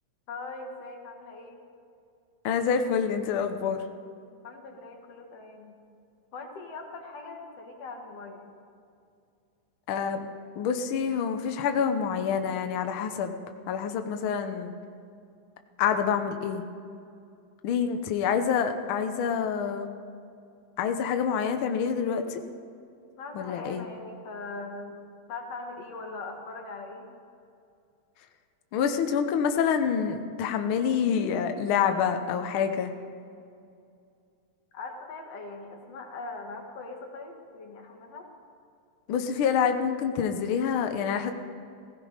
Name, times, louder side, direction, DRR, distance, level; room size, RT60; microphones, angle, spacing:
voice 1, 0.3-1.6 4.4-5.8 6.3-8.5 17.8-18.1 23.2-25.0 25.3-27.1 34.7-38.3, left 3 dB, 60° left, 2 dB, 2.7 m, -41 dB
voice 2, 2.4-3.8 9.9-10.3 10.6-13.4 13.7-14.7 15.8-16.6 17.6-19.9 20.8-22.4 23.3-23.8 28.7-32.9 39.1-41.3, left 7 dB, 80° left, 6 dB, 1.1 m, -27 dB
16.5 x 16.0 x 5.1 m, 2.5 s
omnidirectional pair, 3.4 m